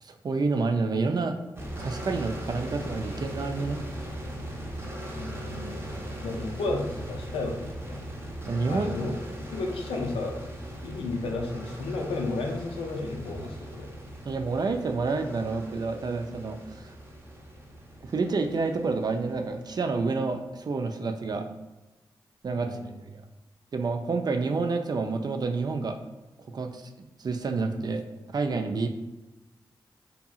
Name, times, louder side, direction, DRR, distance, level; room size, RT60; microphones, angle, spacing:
voice 1, 0.0-1.4 1.8-3.8 8.5-9.2 14.2-16.9 18.0-21.5 22.4-22.8 23.0-23.1 23.7-26.0 26.5-28.0 28.3-28.9, right 4 dB, 45° right, 6 dB, 0.4 m, -29 dB
sound 1, 1.6-20.2, equal, 25° right, 0.8 m, -39 dB
voice 2, 5.1-8.0 8.7-9.1 9.5-10.4 10.8-13.9 22.6-22.9, left 2 dB, 85° left, 1 dB, 0.4 m, -33 dB
2.7 x 2.6 x 2.3 m, 1.1 s
supercardioid pair, 40°, 9 cm